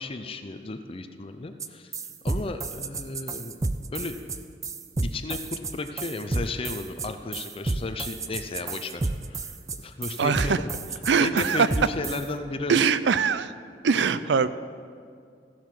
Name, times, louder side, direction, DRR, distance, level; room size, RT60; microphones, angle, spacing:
voice 1, 0.0-1.9 2.2-3.6 3.9-4.2 5.0-9.0 9.3-10.7 11.2-12.8, left 3 dB, 35° left, 8 dB, 0.5 m, -34 dB
sound 1, 1.6-1.7 1.9-12.3, right 3 dB, 20° right, 0.4 m, -31 dB
voice 2, 10.2-10.6 11.1-11.7 12.7-13.5 13.8-14.5, right 6 dB, 85° right, 15 dB, 0.5 m, -22 dB
15.0 x 7.5 x 6.0 m, 2.2 s
head